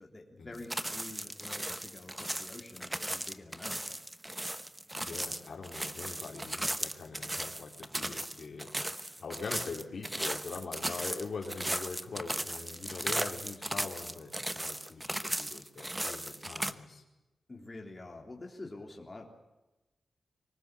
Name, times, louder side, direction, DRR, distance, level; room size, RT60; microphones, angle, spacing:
voice 1, 0.0-3.9 17.5-19.3, left 2 dB, 25° left, 0 dB, 3.4 m, -47 dB
sound 1, 0.5-16.7, right 1 dB, 10° right, 1.0 m, -36 dB
voice 2, 5.0-17.0, left 4 dB, 65° left, 1 dB, 4.3 m, -43 dB
24.5 x 18.5 x 8.3 m, 1.0 s
wide cardioid pair, 110°, 0 cm